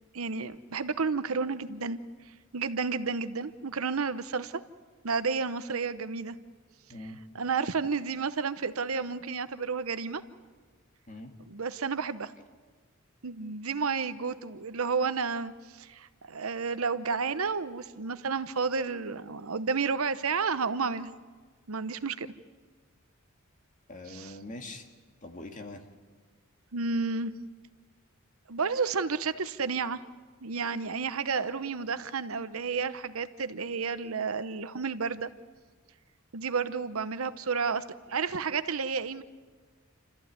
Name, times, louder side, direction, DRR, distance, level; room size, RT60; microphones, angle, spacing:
voice 1, 0.1-2.0 2.5-4.6 5.0-6.3 7.3-10.2 11.5-12.3 13.2-15.5 15.8-21.1 21.7-22.3 24.1-24.3 26.7-27.3 28.5-30.0 30.4-35.3 36.3-37.8 38.1-39.2, right 5 dB, 80° right, 13 dB, 0.9 m, -31 dB
voice 2, 23.9-24.9 25.2-25.8, left 2 dB, 40° left, 4 dB, 2.1 m, -43 dB
28.5 x 14.0 x 9.5 m, 1.5 s
head